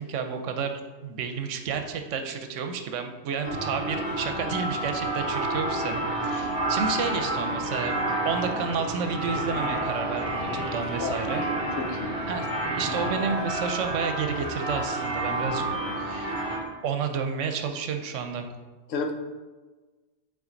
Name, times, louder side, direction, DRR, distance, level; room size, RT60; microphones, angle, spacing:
voice 1, 0.0-8.0 8.2-11.4 12.3-12.5 12.8-15.7 16.0-16.3 16.8-18.5, right 6 dB, 80° right, 6 dB, 1.0 m, -31 dB
sound 1, 3.4-16.6, right 2 dB, 40° left, 2.1 m, -30 dB
Singing, 5.5-13.3, right 1 dB, 25° right, 1.8 m, -39 dB
voice 2, 11.8-12.2 15.7-15.9 18.9-19.1, left 4 dB, 85° left, 5 dB, 1.0 m, -31 dB
6.0 x 4.1 x 3.9 m, 1.3 s
omnidirectional pair, 1.2 m